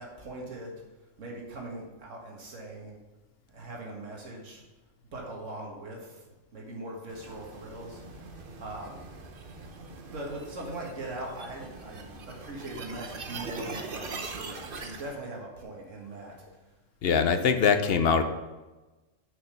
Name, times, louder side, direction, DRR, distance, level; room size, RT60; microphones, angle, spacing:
voice 1, 0.0-3.0 3.5-4.6 5.1-6.3 6.5-9.1 9.6-9.7 10.1-16.7, right 1 dB, 75° right, -2 dB, 2.0 m, -41 dB
sound 1, 7.1-15.1, right 3 dB, 50° right, 1.0 m, -42 dB
voice 2, 17.0-18.2, left 6 dB, 55° left, 8 dB, 0.9 m, -23 dB
6.7 x 5.7 x 6.5 m, 1.1 s
omnidirectional pair, 1.3 m